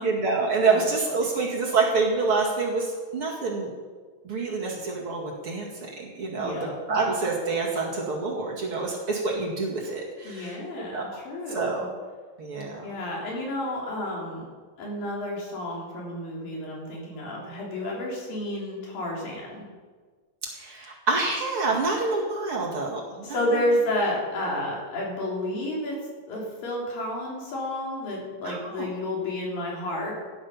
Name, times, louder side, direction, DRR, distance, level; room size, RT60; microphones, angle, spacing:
voice 1, 0.0-3.7 4.2-5.7 6.0-11.1 11.5-11.9 12.4-12.8 20.6-23.6 28.4-28.9, right 4 dB, 45° right, -2 dB, 2.6 m, -27 dB
voice 2, 6.3-6.7 10.2-11.9 12.8-14.4 14.8-19.6 23.2-26.0 26.3-30.1, left 1 dB, 85° left, -3 dB, 5.2 m, -30 dB
16.0 x 10.5 x 5.7 m, 1.5 s
omnidirectional pair, 3.9 m